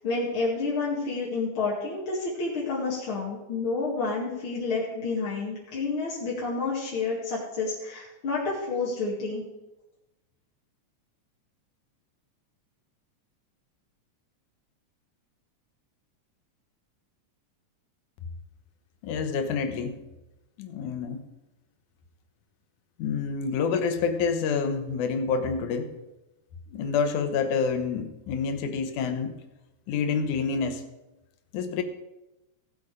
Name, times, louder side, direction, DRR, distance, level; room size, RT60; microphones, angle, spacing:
voice 1, 0.0-9.4, left 3 dB, 45° left, -6 dB, 2.9 m, -29 dB
voice 2, 19.0-20.0 20.6-21.3 23.0-25.9 26.7-29.4 29.9-30.8 31.5-31.8, left 5 dB, 90° left, 8 dB, 2.6 m, -28 dB
16.5 x 8.1 x 5.0 m, 0.98 s
omnidirectional pair, 3.4 m